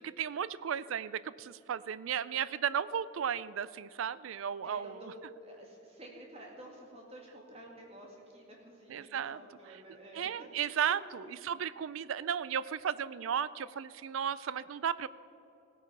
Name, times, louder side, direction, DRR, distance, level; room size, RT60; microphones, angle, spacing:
voice 1, 0.0-5.0 8.9-9.4 10.2-15.1, right 8 dB, 75° right, 18 dB, 0.4 m, -34 dB
voice 2, 4.6-10.3 10.8-11.1, right 1 dB, 30° right, -1 dB, 2.3 m, -51 dB
16.5 x 9.2 x 5.5 m, 3.0 s
head